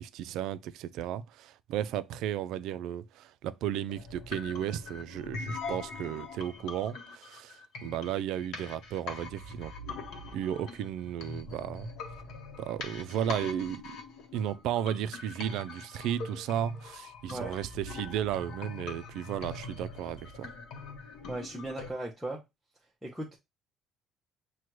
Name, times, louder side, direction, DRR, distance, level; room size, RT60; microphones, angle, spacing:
voice 1, 0.0-9.7 10.3-11.9 12.6-14.0 14.3-20.5, right 10 dB, 65° right, 0.3 m, -34 dB
sound 1, 3.9-21.9, left 3 dB, 60° left, 0.8 m, -43 dB
voice 2, 21.3-22.4 23.0-23.4, right 1 dB, 5° right, 0.5 m, -37 dB
6.1 x 2.2 x 3.0 m
cardioid pair, 160°, 0 cm